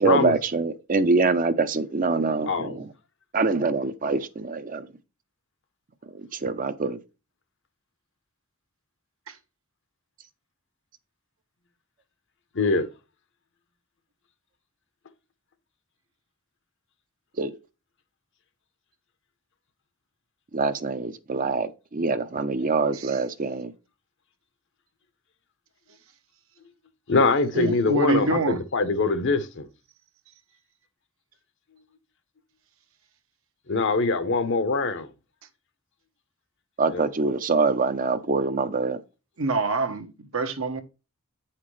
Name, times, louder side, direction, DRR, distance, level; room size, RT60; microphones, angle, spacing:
voice 1, 0.0-2.9 3.3-4.9 6.1-7.0 17.4-17.5 20.5-23.7 36.8-39.0, right 3 dB, 40° right, 0.6 m, -25 dB
voice 2, 2.5-2.8 12.5-12.9 27.1-29.7 33.7-35.1 36.9-37.0, left 3 dB, 60° left, 0.9 m, -23 dB
voice 3, 27.5-28.6 39.4-40.8, right 3 dB, 70° right, 1.0 m, -26 dB
8.5 x 5.8 x 3.2 m
head